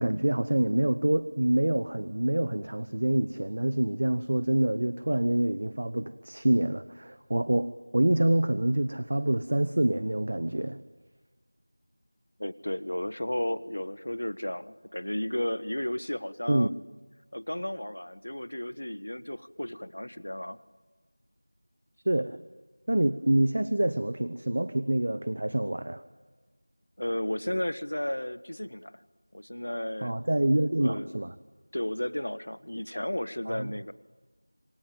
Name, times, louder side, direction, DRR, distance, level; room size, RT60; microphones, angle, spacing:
voice 1, 0.0-10.8 16.5-16.7 22.0-22.4 22.9-26.0 30.0-31.3 33.5-33.7, right 1 dB, 45° right, 14 dB, 1.0 m, -26 dB
voice 2, 12.4-16.7 17.3-20.6 27.0-28.9 29.3-30.2 30.8-31.1 31.7-33.9, left 1 dB, 70° left, 16 dB, 1.4 m, -33 dB
27.0 x 23.0 x 9.1 m, 1.4 s
figure-of-eight pair, 175°, 0 cm